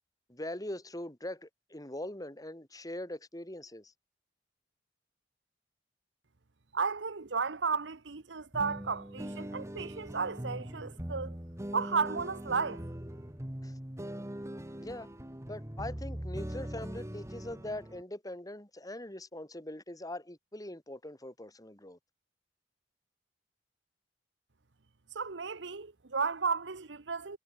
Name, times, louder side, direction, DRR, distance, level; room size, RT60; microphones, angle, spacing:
voice 1, 0.3-3.9 13.6-13.7 14.8-15.1 15.5-22.0, left 1 dB, 20° left, 4.3 m, -42 dB
voice 2, 6.7-11.3 11.7-12.8 25.1-27.4, right 5 dB, 85° right, 1.1 m, -33 dB
sound 1, 8.5-18.0, equal, 15° right, 1.7 m, -41 dB
head